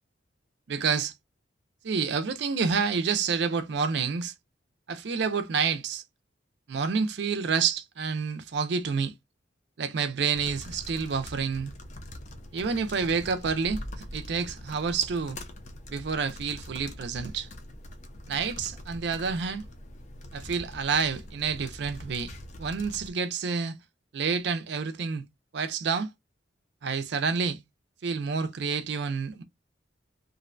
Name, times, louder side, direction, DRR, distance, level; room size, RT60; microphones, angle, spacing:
voice 1, 0.7-1.1 1.8-4.3 4.9-6.0 6.7-9.1 9.8-11.7 12.5-15.4 15.9-17.5 18.3-19.6 20.3-22.3 22.6-23.8 24.1-25.2 25.5-26.1 26.8-27.6 28.0-29.4, right 5 dB, 60° right, 0.4 m, -28 dB
sound 1, 10.3-23.1, left 1 dB, 35° left, 0.4 m, -43 dB
2.6 x 2.1 x 2.5 m
head